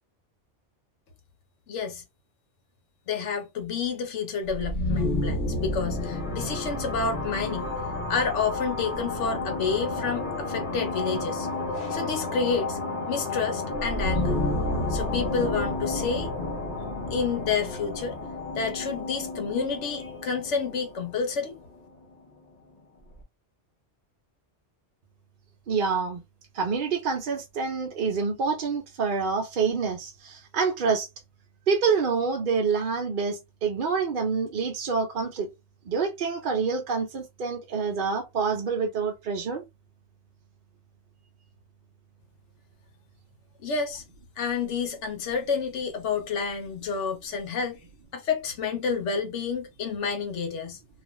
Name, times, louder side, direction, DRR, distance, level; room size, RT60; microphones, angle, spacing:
voice 1, 1.7-2.0 3.1-7.7 8.1-11.5 11.7-12.8 13.1-14.4 14.9-16.3 17.1-18.2 18.5-21.6 43.6-44.0 44.4-47.8 48.1-50.8, left 5 dB, 80° left, 1.0 m, -29 dB
sound 1, 4.5-22.1, left 2 dB, 45° left, 1.0 m, -31 dB
voice 2, 25.7-26.2 26.5-31.1 31.7-35.5 35.9-39.6, right 5 dB, 55° right, 0.7 m, -27 dB
2.4 x 2.4 x 3.0 m
omnidirectional pair, 1.2 m